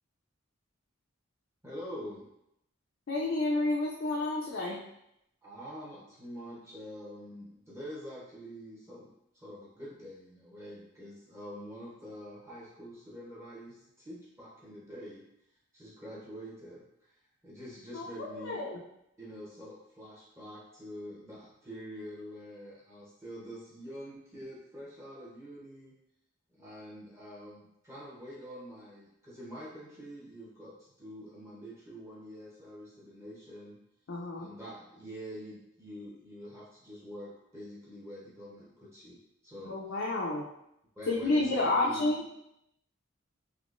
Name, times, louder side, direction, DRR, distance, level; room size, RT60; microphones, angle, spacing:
voice 1, 1.6-2.3 5.4-15.2 15.7-18.6 19.2-25.9 26.6-33.8 34.3-39.8 41.0-42.1, equal, 15° right, -6 dB, 0.8 m, -46 dB
voice 2, 3.1-4.8 17.9-18.8 34.1-34.5 39.6-40.4 41.1-42.2, left 2 dB, 60° left, -3 dB, 0.4 m, -30 dB
3.6 x 2.8 x 2.5 m, 0.81 s
head